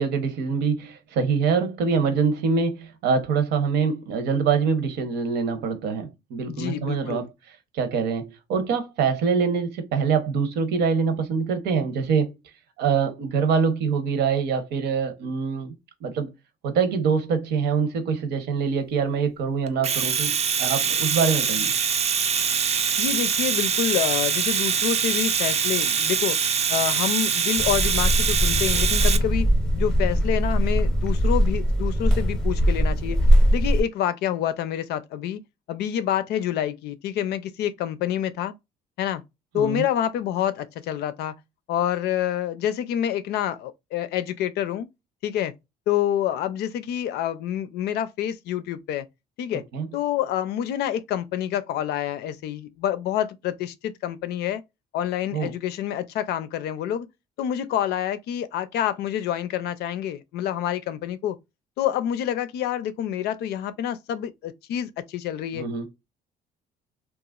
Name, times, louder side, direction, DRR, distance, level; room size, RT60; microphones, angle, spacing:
voice 1, 0.0-7.2 7.7-12.3 12.8-15.7 16.0-16.3 16.6-20.3 20.6-21.7 39.5-39.8 49.7-49.9 55.3-55.5 65.5-65.9, right 5 dB, 80° right, 0.8 m, -24 dB
voice 2, 6.5-7.3 23.0-26.4 26.7-29.5 29.8-33.2 33.5-35.4 35.7-38.5 39.0-39.2 39.5-41.4 41.7-44.9 45.2-45.5 45.9-49.1 49.4-49.6 49.9-54.6 54.9-57.1 57.4-61.4 61.8-65.7, left 10 dB, 75° left, 0.5 m, -27 dB
Domestic sounds home sounds, 19.7-29.2, right 7 dB, 40° right, 0.5 m, -23 dB
sound 1, 27.6-33.8, equal, 5° left, 0.7 m, -21 dB
3.0 x 2.4 x 2.3 m
cardioid pair, 110°, 17 cm